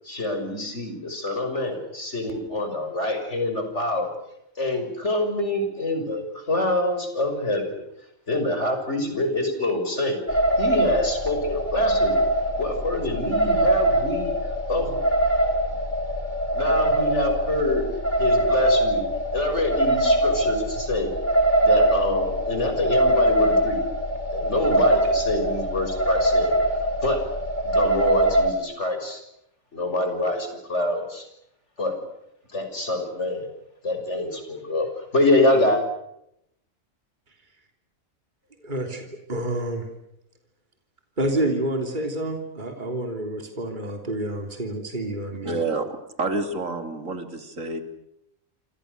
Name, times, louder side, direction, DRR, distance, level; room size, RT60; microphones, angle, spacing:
voice 1, 0.0-4.1 4.6-7.8 8.3-12.2 12.6-14.3 14.7-15.0 16.5-17.8 18.2-19.0 19.3-21.1 21.6-23.8 24.3-26.5 27.0-27.2 27.6-29.2 29.7-31.3 31.8-31.9 32.5-33.4 33.8-35.8, left 2 dB, 55° left, 6 dB, 6.5 m, -26 dB
sound 1, 10.3-28.5, right 1 dB, 35° left, 3.5 m, -22 dB
voice 2, 38.6-39.8 41.2-45.5, right 1 dB, 35° right, 4 dB, 3.5 m, -28 dB
voice 3, 45.4-45.9 46.2-47.8, right 3 dB, 70° right, 7 dB, 3.3 m, -28 dB
28.5 x 27.5 x 6.7 m, 0.80 s
omnidirectional pair, 1.4 m